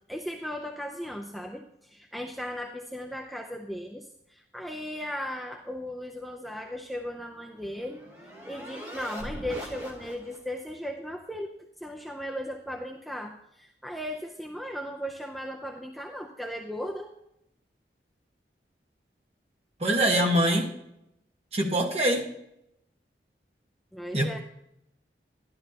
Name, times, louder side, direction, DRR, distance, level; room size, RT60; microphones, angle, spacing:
voice 1, 0.1-8.0 8.4-11.5 11.8-17.1 23.9-24.4, equal, ahead, 1 dB, 0.5 m, -37 dB
sound 1, 7.0-10.6, equal, 20° right, 2.5 m, -42 dB
voice 2, 19.8-20.7 21.5-22.3 24.1-24.4, right 1 dB, 35° right, 1 dB, 1.4 m, -24 dB
12.0 x 11.0 x 2.8 m, 0.78 s
head